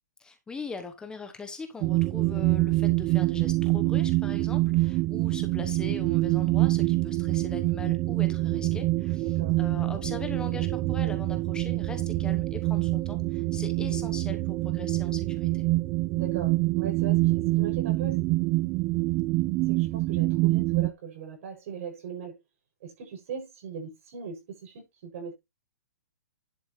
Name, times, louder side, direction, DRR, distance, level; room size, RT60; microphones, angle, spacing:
voice 1, 0.2-15.7, left 4 dB, 10° left, 1.1 m, -41 dB
sound 1, 1.8-20.9, right 20 dB, 25° right, 0.6 m, -26 dB
voice 2, 9.2-9.6 13.8-14.0 16.1-18.2 19.6-22.4 22.8-25.3, right 6 dB, 55° right, 7.0 m, -39 dB
11.0 x 7.6 x 3.2 m
hypercardioid pair, 145°, 9 cm